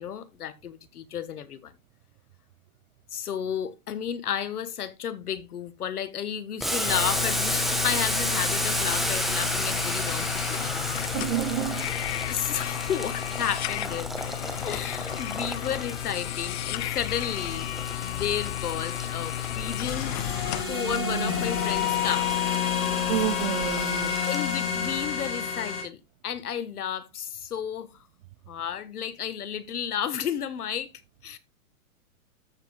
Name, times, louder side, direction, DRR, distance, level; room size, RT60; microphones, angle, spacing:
voice 1, 0.0-1.7 3.1-10.9 12.3-14.1 14.6-17.7 18.0-20.1 20.7-22.3 24.2-27.9 28.5-30.9 31.2-31.4, left 9 dB, 85° left, 1.4 m, -32 dB
Boiling, 6.6-25.0, equal, ahead, 1.1 m, -33 dB
sound 1, 6.9-20.6, left 15 dB, 50° left, 0.5 m, -33 dB
voice 2, 11.1-11.9 23.1-24.2, right 17 dB, 40° right, 0.4 m, -29 dB
sound 2, 19.9-25.8, left 7 dB, 65° left, 6.6 m, -28 dB
13.5 x 7.3 x 2.3 m
hypercardioid pair, 125°, 44 cm